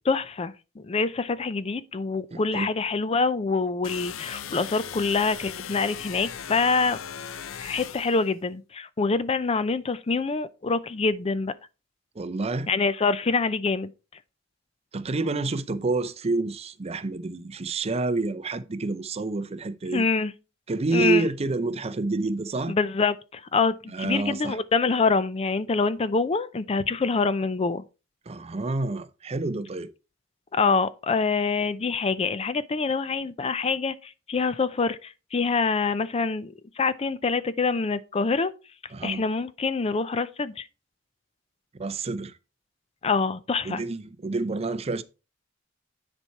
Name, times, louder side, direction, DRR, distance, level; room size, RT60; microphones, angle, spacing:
voice 1, 0.0-7.0 7.6-11.5 12.7-13.9 19.9-20.3 20.9-21.3 22.7-27.8 30.5-38.5 39.0-40.7 43.0-43.8, left 4 dB, 30° left, 0.4 m, -25 dB
voice 2, 2.3-2.7 12.2-12.7 14.9-20.0 20.7-22.8 23.9-24.6 28.3-29.9 38.9-39.2 41.8-42.3 43.6-45.0, right 3 dB, 30° right, 0.5 m, -28 dB
sound 1, 3.8-8.3, left 8 dB, 90° left, 0.6 m, -38 dB
9.9 x 4.4 x 4.5 m
head